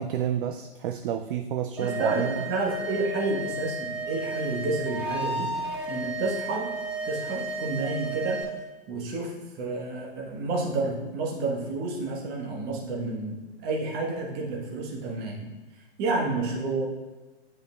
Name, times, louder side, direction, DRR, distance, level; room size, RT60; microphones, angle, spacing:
voice 1, 0.0-2.5, right 9 dB, 55° right, 7 dB, 0.4 m, -29 dB
sound 1, 1.8-8.4, right 1 dB, 5° right, 1.1 m, -33 dB
voice 2, 1.8-5.5 5.9-6.7 7.0-8.4 8.9-15.5 16.0-16.9, right 3 dB, 30° right, -1 dB, 1.3 m, -30 dB
9.6 x 5.2 x 2.3 m, 1.2 s
hypercardioid pair, 120°, 33 cm